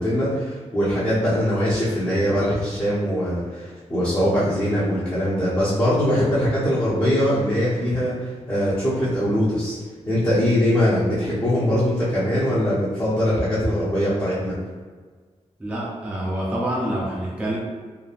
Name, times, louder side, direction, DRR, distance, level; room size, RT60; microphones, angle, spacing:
voice 1, 0.0-9.8 10.1-14.5, equal, 25° left, -11 dB, 0.9 m, -22 dB
voice 2, 15.6-17.6, right 1 dB, 10° right, -6 dB, 0.6 m, -26 dB
3.1 x 2.1 x 2.4 m, 1.5 s
wide cardioid pair, 95°, 12 cm